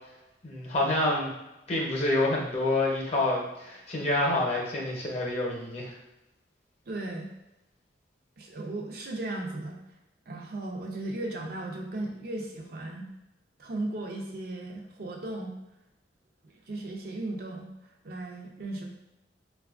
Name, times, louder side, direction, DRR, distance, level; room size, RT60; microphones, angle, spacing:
voice 1, 0.4-1.3 1.7-5.9, left 2 dB, 35° left, -2 dB, 0.7 m, -27 dB
voice 2, 6.9-7.3 8.4-9.8 10.3-13.1 13.6-15.5 16.4-17.7 18.0-18.9, right 2 dB, 55° right, 0 dB, 0.5 m, -36 dB
4.3 x 2.3 x 2.3 m, 0.94 s
head